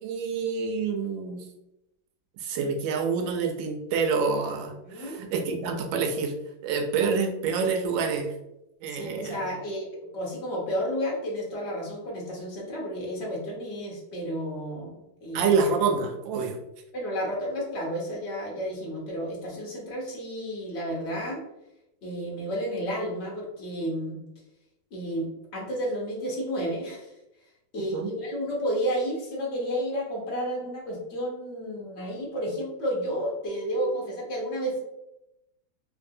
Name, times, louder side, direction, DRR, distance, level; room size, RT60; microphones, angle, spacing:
voice 1, 0.0-1.4 2.4-6.3 6.6-8.3 8.8-9.4 15.3-16.6 27.9-28.1, right 5 dB, 75° right, 4 dB, 1.2 m, -27 dB
voice 2, 4.8-5.2 8.9-9.8 10.1-15.5 16.9-21.4 22.0-24.2 24.9-27.1 27.7-34.8, equal, 50° left, -3 dB, 0.7 m, -31 dB
3.3 x 2.6 x 2.6 m, 0.89 s
omnidirectional pair, 2.3 m